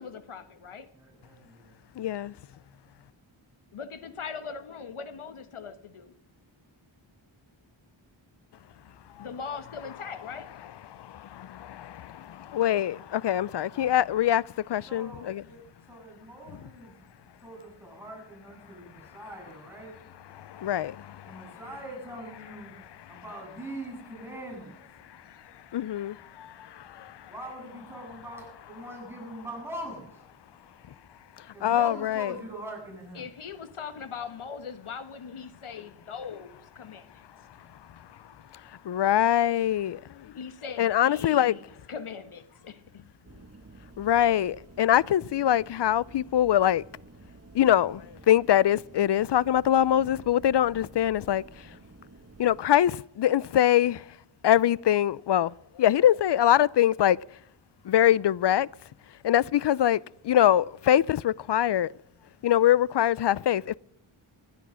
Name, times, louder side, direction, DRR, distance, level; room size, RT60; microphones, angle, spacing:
voice 1, 0.0-0.9 3.7-6.1 9.2-10.5 33.2-37.2 40.4-43.0, left 6 dB, 80° left, 1.4 m, -40 dB
voice 2, 0.9-1.9 14.9-17.0 17.4-19.9 21.2-22.8 23.1-25.0 27.3-30.3 31.5-33.3, right 1 dB, 5° right, 7.9 m, -42 dB
voice 3, 2.0-2.3 10.9-15.4 20.4-21.3 25.7-27.3 31.6-32.3 38.8-40.3 40.8-41.5 44.0-46.8 47.5-51.4 52.4-54.0 54.4-57.2 57.8-58.7 59.2-61.9 62.4-63.7, left 11 dB, 60° left, 0.5 m, -24 dB
sound 1, 43.2-52.6, right 3 dB, 30° right, 1.3 m, -51 dB
15.5 x 11.0 x 6.3 m
wide cardioid pair, 75°, 49 cm